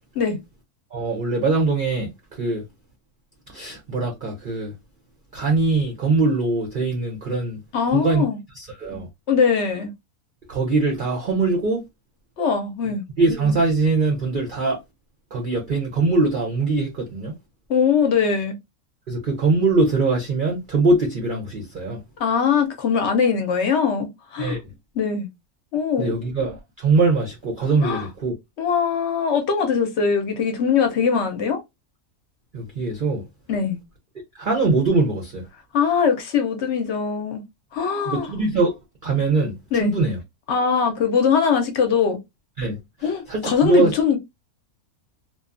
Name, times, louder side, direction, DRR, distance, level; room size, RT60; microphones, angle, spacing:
voice 1, 0.9-2.1 2.4-2.6 3.5-4.7 5.3-7.6 7.9-8.2 8.6-9.1 10.5-11.8 13.2-14.8 15.3-17.3 19.1-22.0 24.4-24.6 26.0-28.3 32.5-33.3 34.4-35.4 38.0-38.7 39.0-40.2 42.6-42.8 43.3-43.9, right 3 dB, 55° right, 0.5 m, -22 dB
voice 2, 7.7-8.4 9.3-9.9 12.4-13.0 17.7-18.6 22.2-24.6 24.9-25.3 25.7-26.2 27.8-28.1 28.6-31.6 33.5-33.8 35.7-37.4 37.7-38.3 39.7-40.0 40.5-42.2 43.0-44.2, left 6 dB, 60° left, 0.8 m, -21 dB
2.6 x 2.2 x 2.4 m
omnidirectional pair, 1.6 m